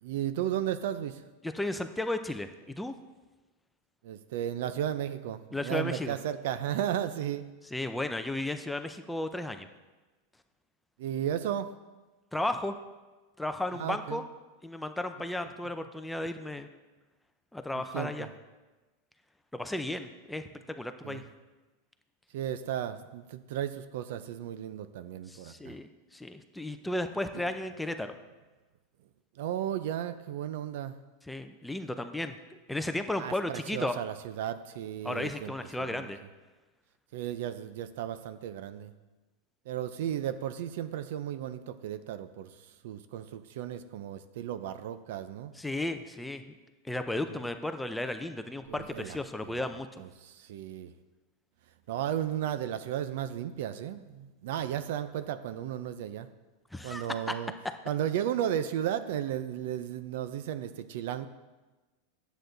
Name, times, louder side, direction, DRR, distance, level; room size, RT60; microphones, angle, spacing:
voice 1, 0.0-1.2 4.0-7.5 11.0-11.7 13.7-14.2 17.7-18.3 21.0-21.2 22.3-25.7 27.3-27.4 29.4-31.0 33.2-36.1 37.1-38.9 39.7-42.5 42.8-45.5 47.3-47.4 48.7-49.2 49.4-49.6 50.0-50.9 51.9-56.3 56.8-57.5 57.9-61.3, right 10 dB, 65° right, 12 dB, 0.6 m, -34 dB
voice 2, 1.4-3.0 5.5-6.1 7.7-9.7 12.3-12.7 13.4-14.2 14.6-16.7 17.5-18.3 19.5-21.2 25.3-28.2 31.3-32.4 32.7-34.0 35.0-36.2 45.6-46.4 46.8-50.0 56.7-57.3, left 1 dB, 5° left, 8 dB, 0.5 m, -34 dB
10.0 x 8.1 x 3.9 m, 1.2 s
supercardioid pair, 145°, 0 cm